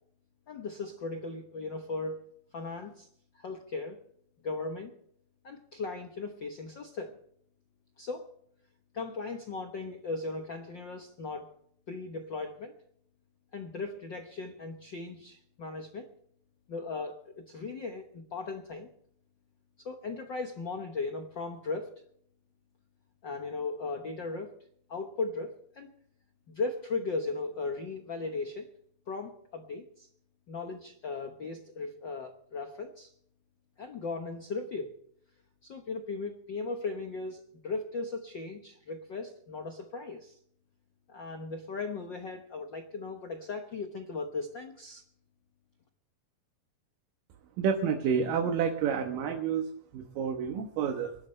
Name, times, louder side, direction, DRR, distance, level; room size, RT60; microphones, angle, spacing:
voice 1, 0.5-2.3 2.5-3.1 3.3-4.0 4.4-4.9 5.4-7.2 8.0-8.3 8.9-11.5 11.9-12.8 13.5-16.1 16.7-18.9 19.8-21.9 23.2-24.5 24.9-25.9 26.5-28.7 29.1-30.1 30.5-33.1 33.8-34.9 35.6-40.4 41.1-45.0, left 3 dB, 80° left, 4 dB, 1.0 m, -37 dB
voice 2, 47.6-51.2, right 7 dB, 80° right, 4 dB, 2.9 m, -29 dB
23.5 x 12.0 x 3.2 m, 0.66 s
omnidirectional pair, 3.9 m